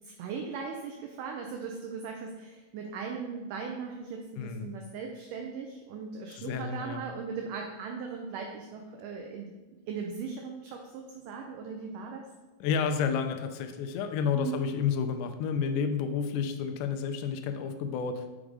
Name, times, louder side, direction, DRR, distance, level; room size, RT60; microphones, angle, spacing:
voice 1, 0.2-9.5 9.9-12.2 14.3-14.6, right 5 dB, 80° right, 2 dB, 1.9 m, -38 dB
voice 2, 4.4-4.7 6.4-7.0 12.6-18.2, left 6 dB, 80° left, 7 dB, 1.9 m, -30 dB
6.3 x 3.6 x 4.8 m, 1.2 s
omnidirectional pair, 4.2 m